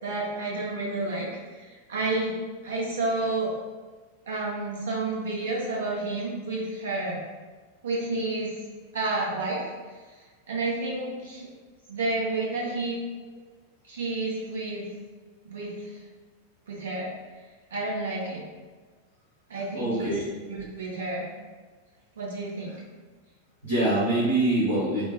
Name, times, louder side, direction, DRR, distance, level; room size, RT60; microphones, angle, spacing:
voice 1, 0.0-2.3 2.6-3.5 4.3-7.2 7.8-8.5 8.9-9.7 10.5-11.5 11.9-13.0 13.9-14.9 15.4-16.0 16.7-17.1 17.7-18.4 19.5-20.1 20.5-21.3 22.2-22.7, right 2 dB, 65° right, -4 dB, 0.9 m, -30 dB
voice 2, 19.7-20.2 23.6-25.1, right 1 dB, 80° right, -12 dB, 1.3 m, -24 dB
4.9 x 2.1 x 2.9 m, 1.4 s
figure-of-eight pair, 90°, 0 cm